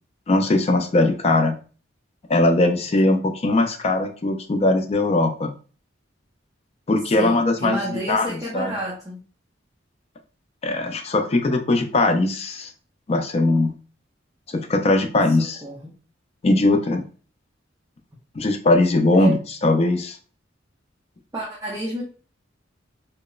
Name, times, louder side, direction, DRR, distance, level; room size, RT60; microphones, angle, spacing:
voice 1, 0.3-1.5 2.3-5.5 6.9-7.8 8.1-8.3 8.5-8.7 10.6-12.7 13.1-13.7 14.5-15.6 16.4-17.0 18.4-19.4 19.6-20.2, left 2 dB, 35° left, 5 dB, 0.4 m, -20 dB
voice 2, 7.0-9.2 15.3-15.9 19.2-19.4 21.3-22.0, right 1 dB, 20° right, -5 dB, 0.5 m, -30 dB
2.9 x 2.0 x 2.3 m, 0.38 s
head